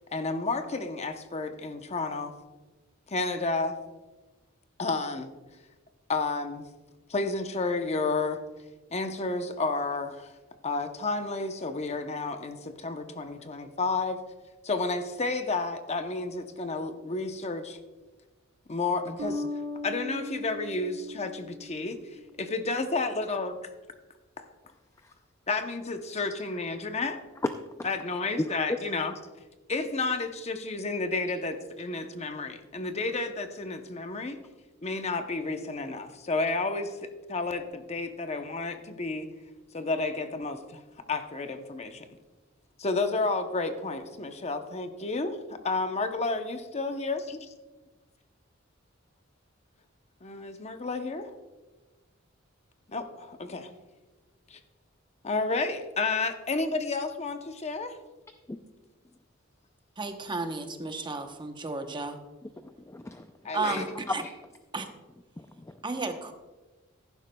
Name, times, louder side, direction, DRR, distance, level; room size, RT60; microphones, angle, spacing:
voice 1, 0.1-2.3 3.1-3.8 4.8-5.3 6.1-6.6 7.1-8.4 8.9-10.3 10.6-14.2 14.6-17.8 18.7-19.4 19.8-22.0 22.4-23.6 25.5-27.2 27.8-29.1 29.7-34.4 34.8-39.3 39.7-40.8 41.1-42.1 42.8-47.2 50.2-51.3 52.9-53.7 54.5-54.6 55.2-58.0 63.4-63.8, left 3 dB, 35° left, 0.7 m, -31 dB
sound 1, 19.2-22.5, left 2 dB, 85° right, 1.4 m, -38 dB
voice 2, 60.0-62.2 63.5-63.9 64.1-64.2 64.7-64.9 65.8-66.3, right 3 dB, 25° right, 0.8 m, -33 dB
voice 3, 62.6-64.3 65.4-65.8, left 2 dB, 15° left, 0.3 m, -35 dB
14.5 x 11.5 x 2.2 m
head